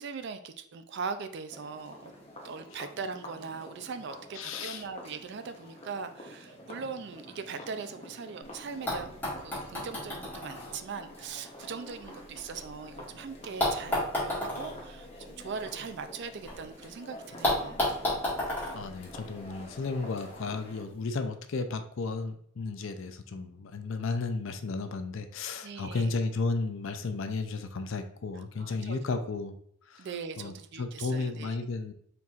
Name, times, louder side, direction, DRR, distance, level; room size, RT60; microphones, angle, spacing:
voice 1, 0.0-2.1 2.4-9.1 9.4-17.8 25.6-26.1 28.3-29.3 30.0-31.6, right 5 dB, 50° right, 10 dB, 0.4 m, -40 dB
sound 1, 1.5-20.8, left 1 dB, 30° left, 0.8 m, -49 dB
voice 2, 4.4-4.8 18.7-29.5 29.9-30.1 30.4-31.9, left 3 dB, 60° left, 8 dB, 0.4 m, -33 dB
sound 2, 8.9-12.9 13.6-16.5 16.8-16.9 17.4-19.8 20.8-20.9, left 1 dB, 10° left, 1.7 m, -33 dB
4.5 x 4.1 x 2.4 m, 0.66 s
head